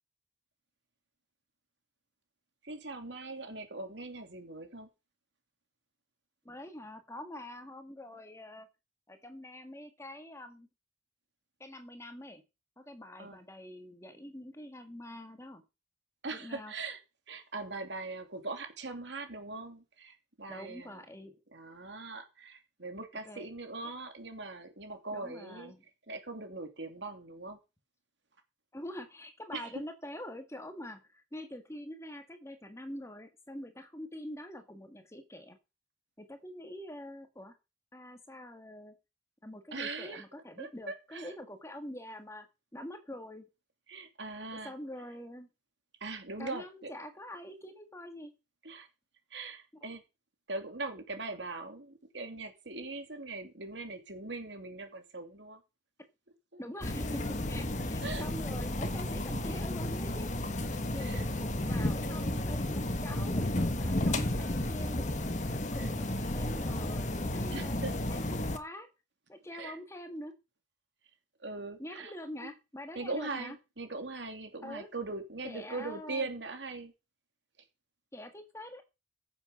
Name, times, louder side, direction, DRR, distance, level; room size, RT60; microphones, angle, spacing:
voice 1, 2.6-4.9 13.2-13.4 16.2-17.0 17.3-21.0 21.5-25.7 26.1-27.6 29.5-29.6 39.7-40.2 40.6-41.3 43.9-44.7 46.0-46.6 48.6-48.9 49.3-50.0 50.5-55.6 56.5-56.6 57.2-57.3 58.0-58.2 60.9-61.2 65.8-65.9 67.5-67.9 69.5-69.8 71.4-72.1 72.4-72.5 72.9-76.9, right 3 dB, 70° right, 6 dB, 2.9 m, -41 dB
voice 2, 6.4-8.7 9.1-10.7 11.6-12.4 12.8-15.6 16.3-16.7 20.5-21.4 23.2-23.5 25.1-25.9 28.7-35.6 36.2-37.5 37.9-38.9 39.4-42.5 42.7-43.4 44.5-45.5 46.4-48.3 49.8-49.9 56.6-60.3 60.9-65.1 65.4-67.8 68.1-68.9 69.3-70.3 71.8-73.6 74.6-74.9 75.4-76.3 78.1-78.8, left 1 dB, 15° left, 7 dB, 1.7 m, -45 dB
sound 1, 56.8-68.6, left 1 dB, 40° left, 1.4 m, -32 dB
15.5 x 7.5 x 5.4 m, 0.28 s
head